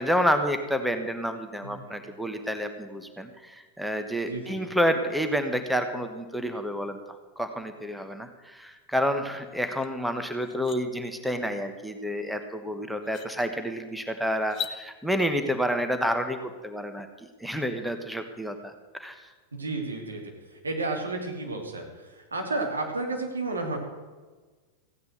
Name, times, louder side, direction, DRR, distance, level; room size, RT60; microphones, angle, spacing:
voice 1, 0.0-7.0 7.4-17.1 17.4-18.7 19.0-19.3, equal, ahead, 7 dB, 1.1 m, -29 dB
voice 2, 4.3-4.6 19.5-20.2 20.6-21.9 22.1-23.8, right 2 dB, 75° right, 1 dB, 2.9 m, -31 dB
sound 1, 9.8-9.9 10.3-10.8 12.4-12.5 13.0-13.3 14.4-14.8, left 8 dB, 35° left, 0.9 m, -36 dB
15.5 x 9.5 x 6.5 m, 1.3 s
figure-of-eight pair, 90°, 0 cm